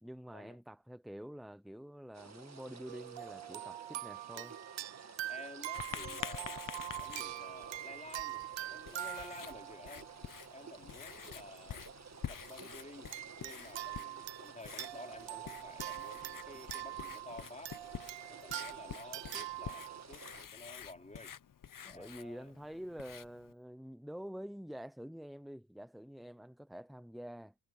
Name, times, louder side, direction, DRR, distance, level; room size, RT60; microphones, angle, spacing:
voice 1, 0.0-4.6 21.8-27.5, equal, ahead, 0.9 m, -47 dB
sound 1, 2.1-20.5, right 5 dB, 40° right, 1.8 m, -53 dB
sound 2, 2.9-10.7 11.4-11.6 13.1-20.0, right 14 dB, 85° right, 0.8 m, -44 dB
voice 2, 5.3-10.1 10.5-11.8 12.3-17.8 18.3-21.4 21.8-22.5, left 2 dB, 15° left, 4.7 m, -52 dB
Writing, 5.7-23.5, left 8 dB, 50° left, 1.0 m, -48 dB
cardioid pair, 85°, 43 cm